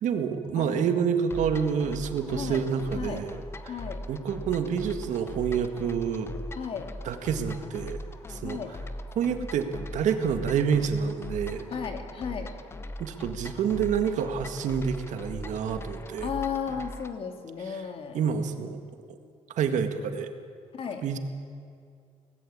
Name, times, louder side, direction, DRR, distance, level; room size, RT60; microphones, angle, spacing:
voice 1, 0.0-3.4 4.1-6.3 7.0-8.0 8.3-8.6 9.1-11.6 13.0-16.3 18.1-18.8 19.6-20.3 21.0-21.2, right 7 dB, 75° right, 7 dB, 1.9 m, -28 dB
voice 2, 0.6-1.0 2.3-2.6 2.9-3.2 3.7-4.0 6.5-6.9 8.4-8.8 11.7-12.5 16.2-18.2 20.7-21.0, left 7 dB, 50° left, 5 dB, 2.5 m, -34 dB
sound 1, 1.3-17.2, left 1 dB, 20° left, 0.9 m, -40 dB
24.0 x 19.0 x 8.7 m, 2.3 s
cardioid pair, 170°, 12 cm